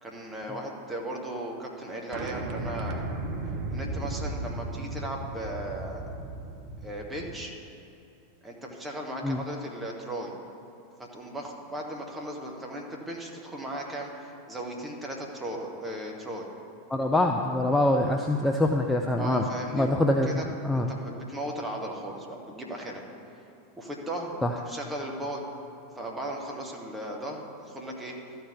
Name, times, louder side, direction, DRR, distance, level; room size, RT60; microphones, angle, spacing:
voice 1, 0.0-3.0 3.7-6.0 6.8-7.5 8.4-10.3 11.1-16.5 19.2-19.9 20.3-20.4 20.7-23.0 23.8-25.4 26.0-28.1, right 1 dB, 10° right, -1 dB, 1.7 m, -36 dB
sound 1, 2.1-7.4, right 2 dB, 40° right, 1.1 m, -35 dB
voice 2, 16.9-19.5 19.7-20.3 20.6-20.9 24.4-24.5, left 1 dB, 10° left, 2 dB, 0.6 m, -24 dB
12.5 x 4.6 x 8.3 m, 2.9 s
figure-of-eight pair, 90°, 0 cm